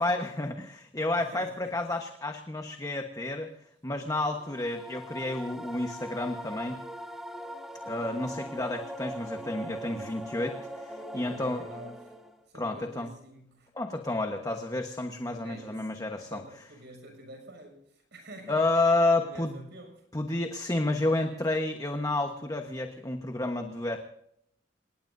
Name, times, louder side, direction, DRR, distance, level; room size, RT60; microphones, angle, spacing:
voice 1, 0.0-3.5 3.8-6.8 7.9-11.6 12.6-13.1 13.7-16.4 18.5-19.5 20.1-24.0, left 2 dB, 20° left, 1.2 m, -30 dB
voice 2, 1.2-1.8 8.1-8.8 11.1-12.2 12.5-13.7 15.4-15.9 16.2-18.7 19.2-20.1, right 1 dB, 65° right, 6.5 m, -48 dB
sound 1, 4.3-12.4, equal, ahead, 1.4 m, -41 dB
27.5 x 19.0 x 2.7 m
head